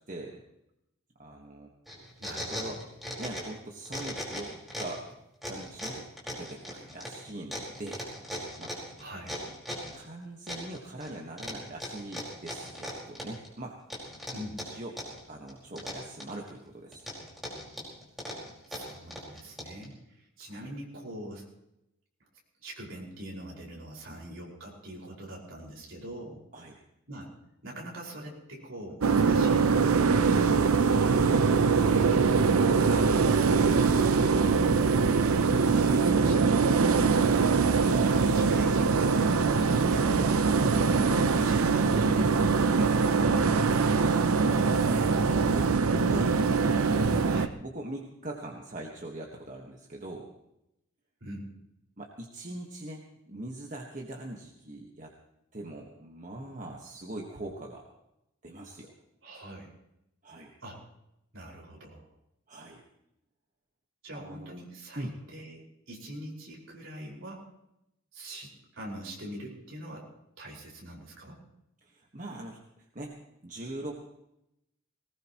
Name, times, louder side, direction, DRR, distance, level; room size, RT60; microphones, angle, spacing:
voice 1, 0.1-0.4 1.2-1.7 2.5-2.8 3.2-5.0 5.5-6.1 6.4-8.1 8.6-8.7 9.9-13.8 14.6-15.0 15.3-17.0 20.5-20.7 24.1-24.2 26.5-26.8 30.2-30.4 31.5-31.6 33.4-33.6 40.7-40.9 44.6-50.3 52.0-55.1 55.5-57.9 58.4-58.9 60.2-60.5 62.5-62.8 64.1-64.6 64.9-65.1 71.8-73.2 73.4-74.1, right 1 dB, 35° right, 0 dB, 1.5 m, -42 dB
sound 1, 1.9-3.6 3.8-5.0 5.4-10.0 10.5-11.1 11.4-13.5 13.9-15.2 15.5-16.5 16.9-19.8, equal, ahead, 5.0 m, -38 dB
voice 2, 2.2-2.7 9.0-9.4 14.3-14.6 18.7-21.4 22.6-26.4 27.1-27.3 27.6-30.8 31.1-31.6 32.2-34.4 35.8-40.4 40.7-44.0 47.3-47.5 51.2-51.5 59.2-59.7 60.6-60.8 61.3-62.1 64.0-67.4 68.1-70.1 70.4-71.4, right 1 dB, 65° right, -3 dB, 5.3 m, -43 dB
sound 2, 29.0-47.5, right 5 dB, 90° right, 0.7 m, -23 dB
20.0 x 19.5 x 3.1 m, 0.83 s
head